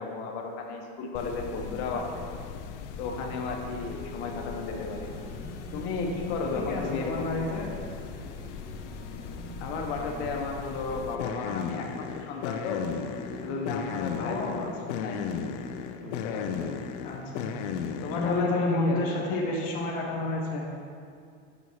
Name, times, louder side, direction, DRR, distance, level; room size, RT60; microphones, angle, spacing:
voice 1, 0.0-2.3 3.0-5.1 5.7-7.4 9.6-12.9 13.4-15.2 16.0-16.7 18.0-19.0, left 4 dB, 65° left, 1 dB, 0.9 m, -33 dB
sound 1, 1.1-18.5, left 7 dB, 80° left, 0.5 m, -37 dB
sound 2, 1.4-2.4 2.7-4.5 4.9-6.6 6.9-8.7 8.9-10.5 10.9-12.5 12.9-16.9 17.2-20.5, right 4 dB, 90° right, 0.9 m, -49 dB
sound 3, 3.8-14.3, equal, 15° right, 0.6 m, -48 dB
voice 2, 6.5-7.7 14.2-15.0 17.0-17.5 18.2-20.7, left 2 dB, 25° left, -2 dB, 0.4 m, -30 dB
6.2 x 6.1 x 2.8 m, 2.3 s
cardioid pair, 180°, 35 cm